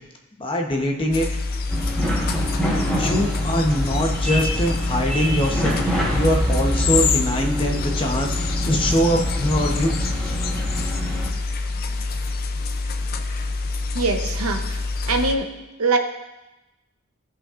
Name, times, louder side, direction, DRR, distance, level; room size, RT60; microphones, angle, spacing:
voice 1, 0.4-1.3 2.9-10.0, equal, 25° left, 1 dB, 0.9 m, -23 dB
sound 1, 1.1-15.3, left 3 dB, 45° left, 0.5 m, -26 dB
sound 2, 1.7-11.3, equal, 5° left, 1.2 m, -26 dB
voice 2, 13.9-15.5 15.8-16.0, right 3 dB, 75° right, 5 dB, 0.8 m, -23 dB
15.0 x 5.5 x 2.5 m, 1.0 s
head